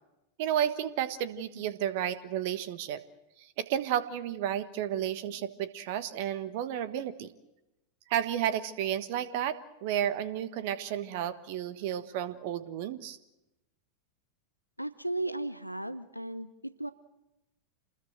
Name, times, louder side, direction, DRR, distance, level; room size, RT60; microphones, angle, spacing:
voice 1, 0.4-3.0 3.4-7.3 8.1-13.2, right 10 dB, 50° right, 14 dB, 1.4 m, -32 dB
voice 2, 14.8-16.9, right 1 dB, 90° right, 15 dB, 0.8 m, -35 dB
27.5 x 20.5 x 7.8 m, 0.97 s
figure-of-eight pair, 90°, 0 cm